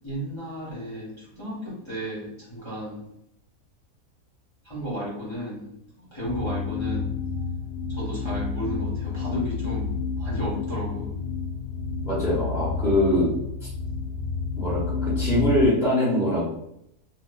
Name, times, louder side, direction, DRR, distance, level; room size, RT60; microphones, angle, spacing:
voice 1, 0.0-3.0 4.6-5.7 6.1-7.1 7.9-11.1, equal, 20° left, -8 dB, 0.9 m, -33 dB
sound 1, 6.2-15.7, left 5 dB, 60° left, 0.9 m, -30 dB
voice 2, 12.0-13.3 13.6-13.7 14.6-16.4, left 1 dB, 5° right, -9 dB, 0.4 m, -23 dB
2.4 x 2.4 x 2.2 m, 0.78 s
omnidirectional pair, 1.6 m